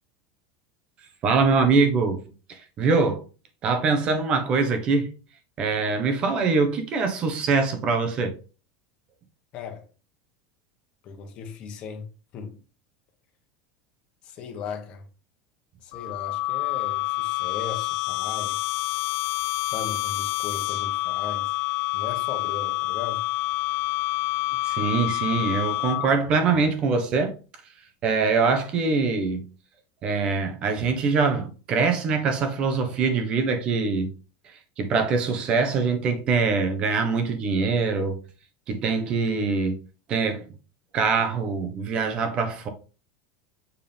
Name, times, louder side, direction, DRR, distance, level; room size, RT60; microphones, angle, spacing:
voice 1, 1.2-2.2 2.5-3.3 3.6-5.1 5.6-8.3 24.6-27.3 28.0-29.5 30.0-34.1 34.4-38.2 38.7-39.8 40.1-40.4 40.9-42.7, right 4 dB, 35° right, 1.3 m, -23 dB
voice 2, 9.5-9.9 11.0-12.1 12.3-12.6 14.2-15.1 15.8-18.8 19.6-21.6 21.9-23.2, left 6 dB, 40° left, 1.4 m, -37 dB
sound 1, 15.9-26.3, left 19 dB, 60° left, 0.4 m, -28 dB
7.1 x 4.8 x 3.6 m
supercardioid pair, 150°, 3 cm